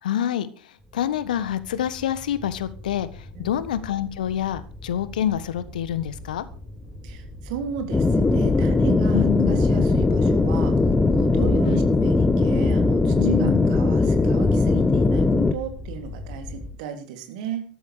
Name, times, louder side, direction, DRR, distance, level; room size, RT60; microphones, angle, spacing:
voice 1, 0.0-6.5 9.1-9.6 11.7-11.8 13.2-13.7, left 10 dB, 65° left, 1.3 m, -27 dB
sound 1, 0.8-16.7, left 1 dB, 5° right, 5.8 m, -39 dB
voice 2, 7.0-10.7 11.2-17.6, right 7 dB, 55° right, 3.2 m, -35 dB
sound 2, 7.9-15.5, left 3 dB, 15° left, 1.2 m, -19 dB
13.5 x 13.5 x 4.9 m
figure-of-eight pair, 80°, 5 cm